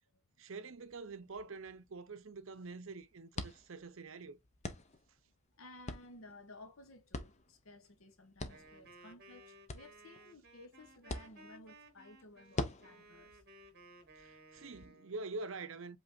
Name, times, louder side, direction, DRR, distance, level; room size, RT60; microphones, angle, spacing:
voice 1, 0.4-4.4 14.2-16.0, right 3 dB, 60° right, 0.6 m, -46 dB
sound 1, 0.7-14.9, left 2 dB, 30° left, 0.6 m, -47 dB
voice 2, 5.6-13.4, left 2 dB, 70° left, 1.0 m, -56 dB
Wind instrument woodwind instrument, 8.5-15.1, right 2 dB, 45° right, 1.3 m, -59 dB
5.4 x 3.4 x 2.6 m
head